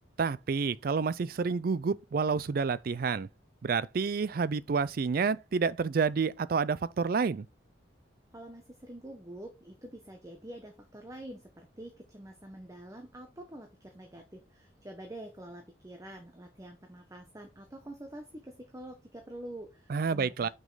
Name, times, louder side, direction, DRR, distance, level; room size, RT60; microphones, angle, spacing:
voice 1, 0.2-3.3 3.6-7.4 19.9-20.5, right 5 dB, 50° right, 0.4 m, -29 dB
voice 2, 8.3-20.5, right 1 dB, 15° right, 0.9 m, -46 dB
6.2 x 5.3 x 3.9 m
head